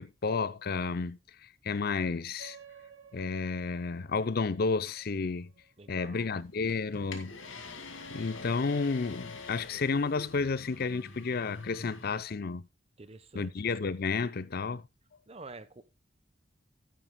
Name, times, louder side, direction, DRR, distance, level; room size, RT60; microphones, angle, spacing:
voice 1, 0.0-2.6 3.1-5.5 5.9-7.3 8.1-12.7 13.3-14.8, left 4 dB, 50° left, 0.5 m, -31 dB
sound 1, 2.4-7.3, right 6 dB, 75° right, 1.8 m, -56 dB
voice 2, 5.8-6.3 13.0-13.7 15.3-15.8, right 3 dB, 30° right, 0.8 m, -48 dB
sound 2, 6.2-12.2, left 3 dB, 85° left, 2.3 m, -46 dB
16.0 x 9.3 x 2.2 m
head